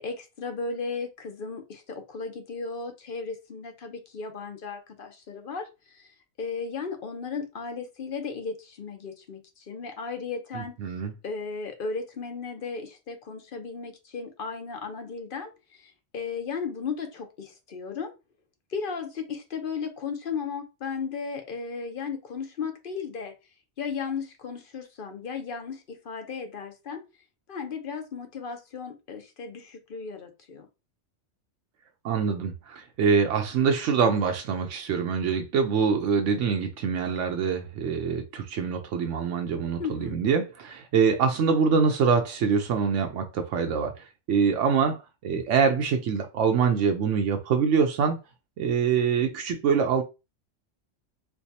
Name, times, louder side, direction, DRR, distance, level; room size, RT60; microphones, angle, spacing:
voice 1, 0.0-5.7 5.9-10.8 11.2-18.1 18.7-23.3 23.8-27.0 27.5-30.7 39.8-40.2, left 5 dB, 50° left, 6 dB, 0.8 m, -35 dB
voice 2, 10.5-11.1 32.0-48.2 48.6-50.0, right 6 dB, 80° right, 5 dB, 0.9 m, -25 dB
4.5 x 2.3 x 2.7 m, 0.27 s
omnidirectional pair, 1.3 m